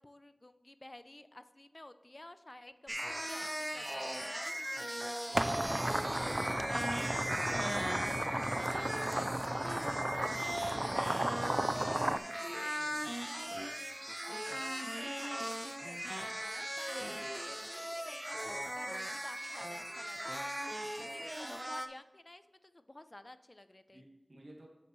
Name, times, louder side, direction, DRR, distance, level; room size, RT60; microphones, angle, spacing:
voice 1, 0.0-11.0 14.3-15.4 15.6-20.4 21.1-24.0, left 1 dB, 40° left, 12 dB, 0.5 m, -53 dB
sound 1, 2.9-21.9, equal, 15° right, 0.7 m, -38 dB
sound 2, 5.3-12.2, right 1 dB, 30° right, 0.3 m, -34 dB
voice 2, 11.4-13.1 23.9-24.7, right 1 dB, 65° right, 0 dB, 1.7 m, -54 dB
8.1 x 7.8 x 3.1 m, 1.2 s
wide cardioid pair, 40°, 0 cm